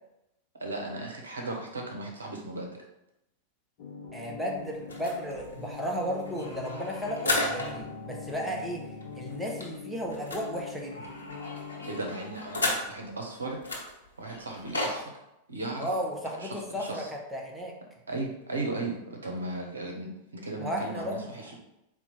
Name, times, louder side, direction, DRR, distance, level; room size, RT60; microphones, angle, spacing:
voice 1, 0.6-2.8 11.8-13.6 14.2-15.1 15.5-15.9 16.4-17.1 18.1-21.6, right 2 dB, 75° right, 1 dB, 0.7 m, -36 dB
sound 1, 3.8-12.1, left 5 dB, 50° left, 0.9 m, -42 dB
voice 2, 4.1-11.1 15.8-17.8 20.6-21.6, equal, 5° right, -2 dB, 0.8 m, -34 dB
sound 2, 4.9-7.9 8.3-8.4 8.6-8.8 9.0-13.2 13.6-15.0, left 2 dB, 75° left, 0.9 m, -34 dB
4.2 x 2.3 x 4.3 m, 0.87 s
figure-of-eight pair, 90°, 0 cm